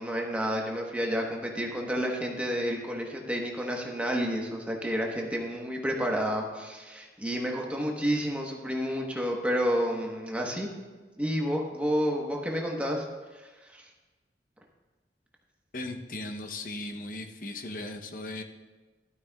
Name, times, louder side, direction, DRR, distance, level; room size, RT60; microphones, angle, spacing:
voice 1, 0.0-10.7 11.2-13.1 13.3-13.8, equal, 10° right, 0 dB, 1.1 m, -30 dB
voice 2, 15.7-18.4, left 2 dB, 50° left, 5 dB, 0.8 m, -37 dB
12.5 x 12.5 x 2.3 m, 1.3 s
head